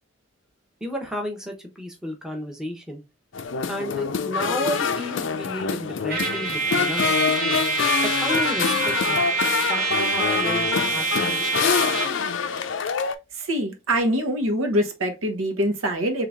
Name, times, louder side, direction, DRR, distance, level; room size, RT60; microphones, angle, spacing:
voice 1, 0.8-3.0 3.7-7.2 8.2-9.2 9.7-9.8 10.1-12.1, equal, 5° right, 0.9 m, -32 dB
sound 1, 3.3-13.1, left 6 dB, 60° left, 0.5 m, -25 dB
Trumpet, 6.1-12.2, right 4 dB, 45° right, 1.4 m, -26 dB
voice 2, 13.4-16.3, equal, 80° right, 1.1 m, -24 dB
3.8 x 3.3 x 3.4 m
head